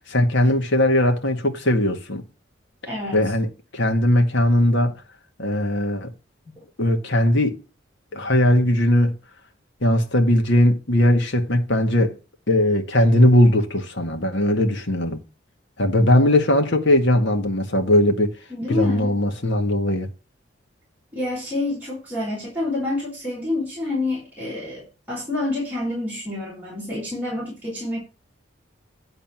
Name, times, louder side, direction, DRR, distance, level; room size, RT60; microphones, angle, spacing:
voice 1, 0.1-2.2 3.1-3.5 3.7-4.9 5.4-6.1 6.8-7.6 8.1-9.1 9.8-12.2 12.5-15.2 15.8-18.4 18.7-20.1, left 1 dB, 65° left, 1.7 m, -19 dB
voice 2, 2.9-3.3 18.5-19.1 21.1-28.0, left 2 dB, 10° right, 4.7 m, -28 dB
10.5 x 4.0 x 7.4 m
head